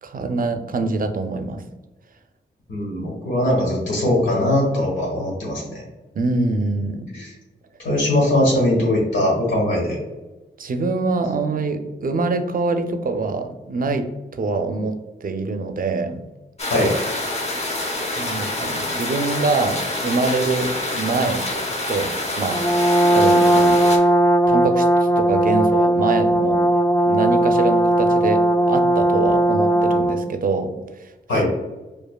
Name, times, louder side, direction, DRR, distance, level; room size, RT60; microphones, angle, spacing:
voice 1, 0.0-1.6 6.2-7.1 10.6-14.1 14.4-16.2 16.7-16.9 18.2-21.4 21.9-22.1 22.4-22.6 23.1-23.8 24.5-24.9 25.2-26.6 27.1-30.7 31.0-31.1, right 3 dB, 50° right, 7 dB, 0.5 m, -24 dB
voice 2, 2.7-5.8 7.1-7.3 7.8-10.0 16.7-16.9 31.3-31.5, left 1 dB, 85° left, -3 dB, 1.4 m, -20 dB
sound 1, 16.6-24.0, left 1 dB, 35° left, 0.8 m, -27 dB
Brass instrument, 22.5-30.3, right 1 dB, 10° left, 0.5 m, -17 dB
4.8 x 2.4 x 2.3 m, 1.1 s
cardioid pair, 50°, 19 cm